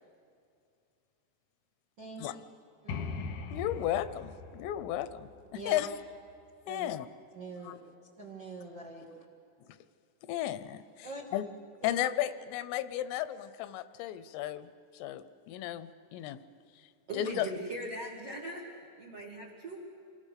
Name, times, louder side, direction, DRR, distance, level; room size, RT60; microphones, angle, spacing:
voice 1, 2.0-2.4 2.8-3.2 5.5-5.8 6.6-6.9 7.3-7.8 8.2-9.1 11.0-11.2 11.8-12.1, right 2 dB, 80° right, -1 dB, 1.0 m, -43 dB
sound 1, 2.9-6.5, left 4 dB, 70° left, 2.1 m, -41 dB
voice 2, 3.5-5.3 5.7-5.9 6.7-7.1 7.6-7.8 10.3-11.4 11.8-14.7 14.9-16.4 17.2-17.5, left 13 dB, 85° left, 13 dB, 3.3 m, -34 dB
voice 3, 17.1-19.8, right 1 dB, 60° right, -2 dB, 1.6 m, -40 dB
27.0 x 20.5 x 6.6 m, 2.4 s
omnidirectional pair, 5.7 m